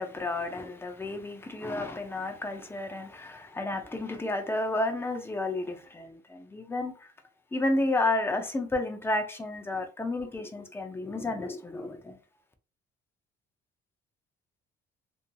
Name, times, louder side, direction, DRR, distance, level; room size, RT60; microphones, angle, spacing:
voice 1, 0.0-7.1 7.5-12.2, left 2 dB, 10° left, 0.5 m, -31 dB
2.7 x 2.6 x 2.2 m
cardioid pair, 125°, 21 cm